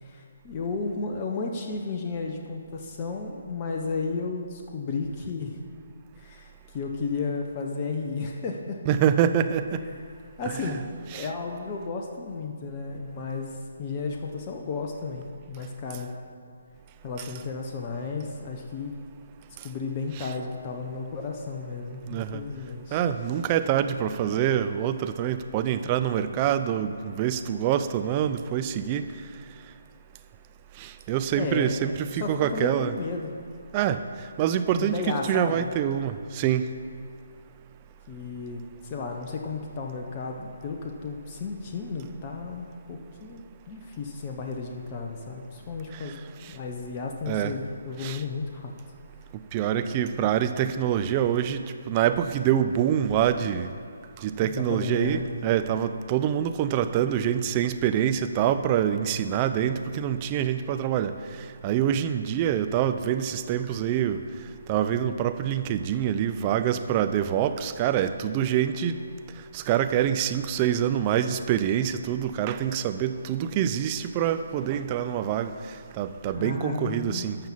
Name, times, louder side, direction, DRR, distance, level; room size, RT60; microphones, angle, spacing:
voice 1, 0.0-5.6 6.2-8.8 9.8-10.0 10.4-16.1 17.0-18.9 19.6-23.0 31.3-31.8 32.1-33.3 34.8-35.7 38.1-46.2 46.5-48.7 54.4-55.3 76.4-77.3, left 4 dB, 30° left, 1 dB, 1.0 m, -33 dB
voice 2, 8.9-9.8 10.6-10.8 11.1-11.2 20.2-20.3 22.1-22.4 22.9-29.0 30.8-32.9 33.7-34.0 34.4-36.7 47.3-47.5 48.0-48.2 49.5-51.6 51.9-53.7 54.2-61.1 61.6-64.2 64.7-69.0 69.5-75.5 76.0-77.4, right 10 dB, 25° right, 9 dB, 0.5 m, -25 dB
13.0 x 5.7 x 7.2 m, 2.2 s
figure-of-eight pair, 140°, 0 cm